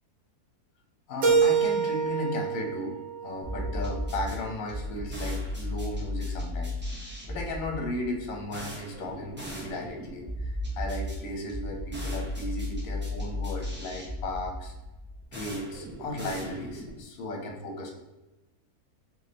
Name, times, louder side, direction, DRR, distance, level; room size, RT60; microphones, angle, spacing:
voice 1, 1.1-3.0 3.2-6.7 7.3-14.7 15.3-17.9, left 1 dB, 60° left, 2 dB, 1.1 m, -35 dB
Keyboard (musical), 1.2-4.1, right 5 dB, 80° right, 1.4 m, -26 dB
sound 1, 3.4-17.0, left 1 dB, 15° right, 0.3 m, -35 dB
3.1 x 3.1 x 3.9 m, 1.1 s
omnidirectional pair, 1.7 m